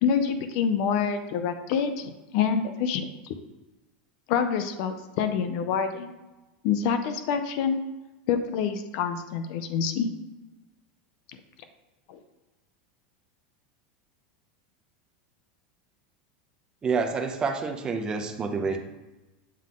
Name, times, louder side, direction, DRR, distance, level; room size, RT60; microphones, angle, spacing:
voice 1, 0.0-3.4 4.3-6.1 6.6-7.8 8.3-10.1 12.1-12.2, left 7 dB, 50° left, 9 dB, 0.5 m, -27 dB
voice 2, 16.8-18.8, right 4 dB, 15° right, 4 dB, 0.5 m, -28 dB
7.5 x 3.6 x 3.7 m, 1.1 s
supercardioid pair, 165°, 5 cm